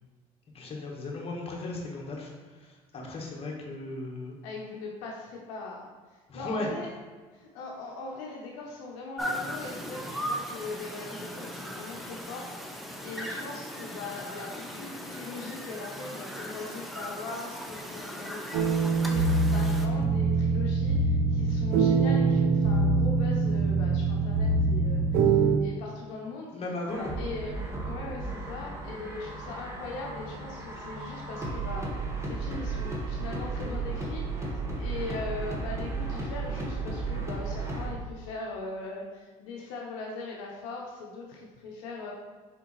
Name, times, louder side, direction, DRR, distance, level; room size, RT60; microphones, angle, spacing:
voice 1, 0.5-4.4 6.3-6.7 26.5-27.1, left 2 dB, 40° left, -1 dB, 1.1 m, -36 dB
voice 2, 4.4-6.9 7.3-12.7 13.0-26.5 27.2-27.6 27.9-31.9 32.2-34.4 34.8-42.1, left 3 dB, 80° left, -2 dB, 0.6 m, -40 dB
sound 1, 9.2-19.9, equal, ahead, 0.5 m, -38 dB
sound 2, 18.5-25.6, right 4 dB, 70° right, 0.5 m, -24 dB
sound 3, 26.9-37.9, right 3 dB, 15° right, 1.0 m, -34 dB
4.3 x 3.5 x 3.0 m, 1.3 s
supercardioid pair, 80°, 16 cm